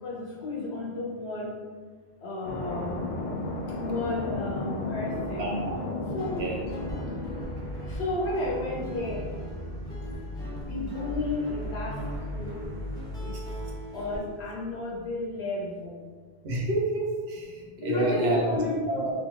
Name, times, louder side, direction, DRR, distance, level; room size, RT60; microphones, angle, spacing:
voice 1, 0.0-1.6 2.2-3.2 3.8-5.5 6.1-6.4 7.9-9.2 10.6-12.0 12.3-12.6 13.2-13.3 13.9-16.0 17.8-18.7, left 2 dB, 80° left, -4 dB, 1.0 m, -32 dB
sound 1, 2.4-8.8, left 2 dB, 55° left, 0.6 m, -35 dB
sound 2, 4.9-15.1, equal, 65° right, 1.4 m, -39 dB
voice 2, 5.3-5.8 6.3-6.7 13.3-13.4 16.4-18.5 18.9-19.1, right 1 dB, 90° right, -1 dB, 0.9 m, -29 dB
Guitar, 5.9-14.2, right 1 dB, 5° left, 0.6 m, -41 dB
3.1 x 2.8 x 2.7 m, 1.5 s
omnidirectional pair, 1.1 m